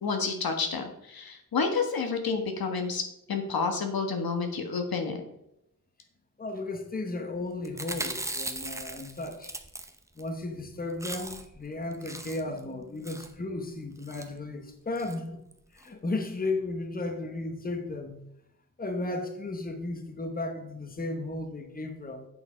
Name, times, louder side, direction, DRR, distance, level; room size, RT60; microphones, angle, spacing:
voice 1, 0.0-3.0 3.3-5.2, left 5 dB, 90° left, 4 dB, 1.5 m, -29 dB
voice 2, 6.4-9.5 10.2-15.4 15.7-18.2 18.8-22.3, left 2 dB, 25° left, 5 dB, 1.1 m, -34 dB
Chewing mastication, 7.6-10.3 10.6-10.7 10.9-11.6 11.9-12.6 13.0-13.4 14.0-14.3 15.0-15.2 15.5-15.6 15.8-15.9, right 1 dB, 10° right, 0.7 m, -38 dB
8.5 x 6.7 x 5.0 m, 0.79 s
wide cardioid pair, 150°, 35 cm